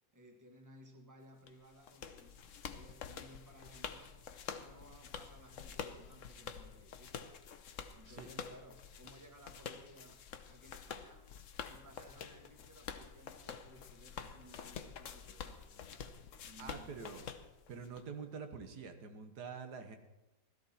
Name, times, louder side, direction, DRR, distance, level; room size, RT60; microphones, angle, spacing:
voice 1, 0.1-2.3 2.7-4.2 4.6-7.3 7.9-10.2 10.5-11.3 11.6-16.2 16.4-17.1, equal, 10° right, 3 dB, 1.3 m, -59 dB
sound 1, 1.5-18.0, left 7 dB, 55° left, 1.0 m, -48 dB
voice 2, 16.6-17.3 17.7-20.0, right 5 dB, 70° right, 6 dB, 1.8 m, -46 dB
16.5 x 13.0 x 4.3 m, 0.97 s
omnidirectional pair, 1.8 m